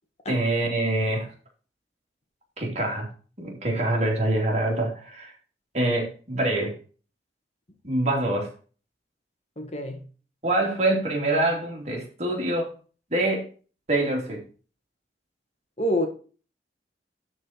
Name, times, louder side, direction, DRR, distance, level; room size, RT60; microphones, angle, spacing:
voice 1, 0.3-1.3 2.6-3.1 3.4-5.3 5.7-6.8 7.8-8.5 10.4-12.7 13.1-13.5 13.9-14.4, right 1 dB, 40° right, 2.9 m, -25 dB
voice 2, 9.6-10.1 15.8-16.1, equal, 35° left, 1.5 m, -26 dB
12.5 x 4.4 x 4.4 m
head